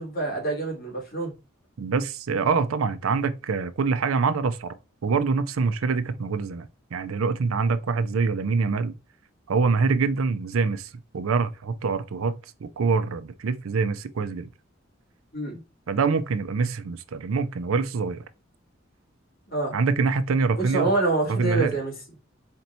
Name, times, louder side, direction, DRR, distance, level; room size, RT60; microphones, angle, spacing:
voice 1, 0.0-1.3 15.3-15.6 19.5-19.8 20.6-21.9, right 3 dB, 50° left, 2.1 m, -26 dB
voice 2, 1.8-8.9 9.5-14.5 15.9-18.2 19.7-20.9 21.3-21.8, right 4 dB, 90° right, 0.5 m, -25 dB
4.4 x 2.7 x 4.2 m
head